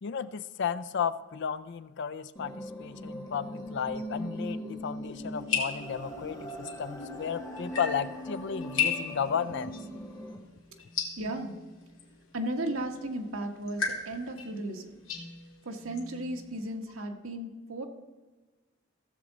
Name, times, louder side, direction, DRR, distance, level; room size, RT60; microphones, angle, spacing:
voice 1, 0.0-9.7, left 7 dB, 60° left, 14 dB, 0.4 m, -34 dB
sound 1, 2.4-10.4, equal, 20° left, 1.6 m, -40 dB
sound 2, 5.1-16.8, left 6 dB, 75° left, 2.1 m, -37 dB
voice 2, 11.2-11.6 12.3-14.9 15.6-17.9, right 1 dB, 85° right, 3 dB, 1.3 m, -35 dB
16.0 x 7.2 x 4.0 m, 1.2 s
head